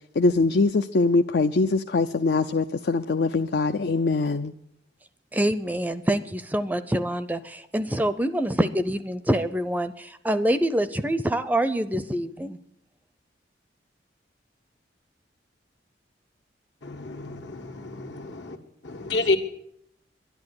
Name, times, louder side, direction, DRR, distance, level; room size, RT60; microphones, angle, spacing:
voice 1, 0.2-4.5, left 3 dB, 60° left, 9 dB, 0.5 m, -22 dB
voice 2, 5.3-12.6, right 1 dB, 10° right, 13 dB, 0.5 m, -25 dB
voice 3, 16.8-18.6 18.8-19.4, left 2 dB, 80° left, 4 dB, 1.8 m, -29 dB
11.5 x 11.0 x 9.7 m, 0.75 s
head